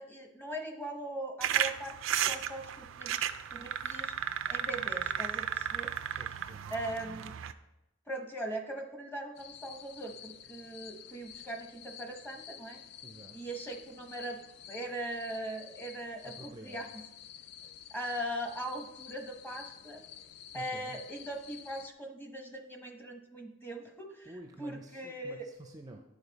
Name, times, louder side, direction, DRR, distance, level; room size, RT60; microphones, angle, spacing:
voice 1, 0.0-4.1 4.5-5.9 6.7-7.3 8.1-12.8 13.3-14.4 14.7-17.0 17.9-20.0 20.5-25.5, right 1 dB, 10° left, 3 dB, 0.9 m, -40 dB
sound 1, 1.4-7.5, right 9 dB, 80° right, 0.4 m, -34 dB
voice 2, 6.1-7.0 13.0-13.4 16.2-16.9 20.5-21.0 24.2-26.0, right 2 dB, 20° right, 3 dB, 0.5 m, -50 dB
sound 2, 9.4-21.9, left 9 dB, 55° left, 0.3 m, -50 dB
9.6 x 5.2 x 4.0 m, 0.92 s
head